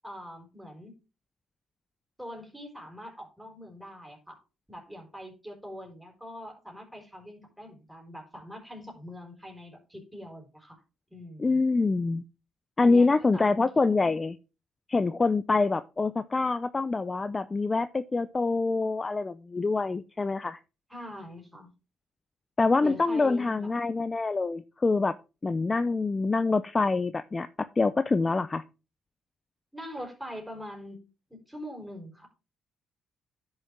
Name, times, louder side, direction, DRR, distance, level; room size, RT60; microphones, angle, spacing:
voice 1, 0.0-0.9 2.2-4.4 4.7-10.8 11.1-11.6 12.8-14.1 20.9-21.7 22.8-23.8 29.7-31.0 31.3-32.3, equal, 5° right, 1 dB, 4.2 m, -43 dB
voice 2, 11.4-12.2 12.8-14.4 14.9-20.6 22.6-25.2 25.4-27.5 27.8-28.6, left 3 dB, 25° left, 14 dB, 0.4 m, -25 dB
10.5 x 6.4 x 3.6 m, 0.31 s
cardioid pair, 90°, 0 cm